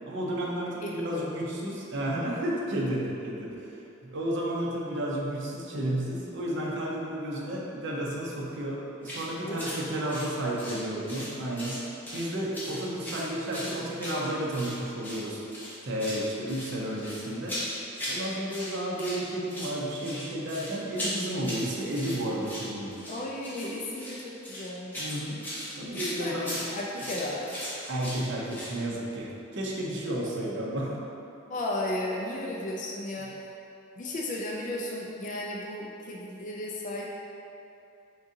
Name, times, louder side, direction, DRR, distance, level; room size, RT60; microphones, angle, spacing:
voice 1, 0.1-11.8 12.1-15.4 15.8-17.6 18.1-22.9 25.0-25.4 25.7-26.6 27.9-31.0, right 1 dB, 60° right, -4 dB, 0.6 m, -32 dB
voice 2, 0.8-1.2 9.5-9.6 23.1-25.0 25.9-26.4 26.7-27.5 31.5-33.5 34.0-37.1, left 1 dB, 40° left, -2 dB, 0.3 m, -34 dB
sound 1, 9.0-9.3 9.6-9.8 10.1-11.3 11.6-12.3 12.5-14.7 15.0-15.2 15.5-16.2 16.5-18.2 18.5-19.2 19.5-28.8, equal, 10° left, 0.8 m, -38 dB
3.8 x 3.6 x 2.7 m, 2.8 s
head